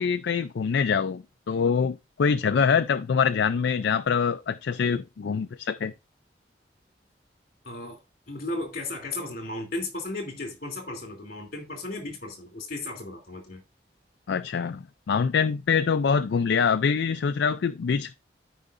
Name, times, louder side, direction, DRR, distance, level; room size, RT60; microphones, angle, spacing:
voice 1, 0.0-5.9 14.3-18.1, left 6 dB, 70° left, 0.4 m, -25 dB
voice 2, 7.6-8.0 8.3-13.6, left 2 dB, 50° left, 2.8 m, -35 dB
13.5 x 5.0 x 2.5 m
head